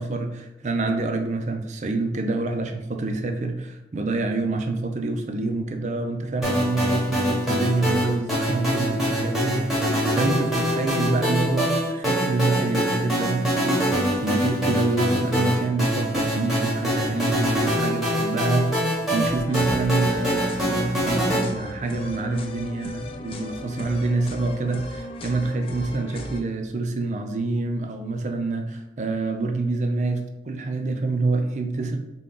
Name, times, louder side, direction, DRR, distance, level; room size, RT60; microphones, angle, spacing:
voice 1, 0.0-32.0, right 3 dB, 40° right, 5 dB, 0.4 m, -26 dB
sound 1, 6.4-21.4, equal, ahead, 0.9 m, -24 dB
sound 2, 19.3-26.4, left 1 dB, 30° left, 0.3 m, -37 dB
3.6 x 2.3 x 3.7 m, 0.95 s
head